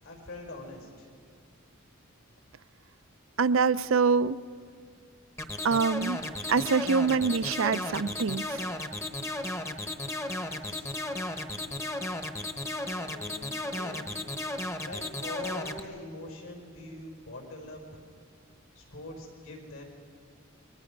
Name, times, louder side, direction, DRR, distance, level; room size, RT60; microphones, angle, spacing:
voice 1, 0.0-1.2 10.6-11.0 13.0-14.3 14.8-18.1 18.7-19.8, left 2 dB, 75° left, 1 dB, 5.7 m, -43 dB
voice 2, 3.4-4.4 5.6-6.2 6.5-8.6, right 5 dB, 65° right, 16 dB, 0.5 m, -25 dB
sound 1, 5.4-15.8, left 1 dB, 15° left, 1.0 m, -34 dB
28.5 x 23.5 x 5.3 m, 2.2 s
head